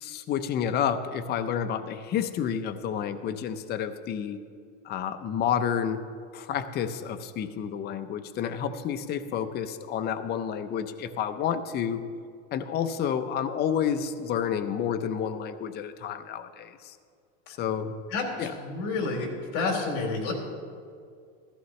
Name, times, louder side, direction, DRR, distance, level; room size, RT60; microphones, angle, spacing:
voice 1, 0.0-4.4 4.8-6.0 6.3-12.0 12.5-16.9 17.5-18.0 18.4-18.5, left 8 dB, 30° left, 9 dB, 0.6 m, -30 dB
voice 2, 18.1-20.3, left 3 dB, 60° left, 0 dB, 3.6 m, -29 dB
15.0 x 14.5 x 3.2 m, 2.2 s
supercardioid pair, 140°, 36 cm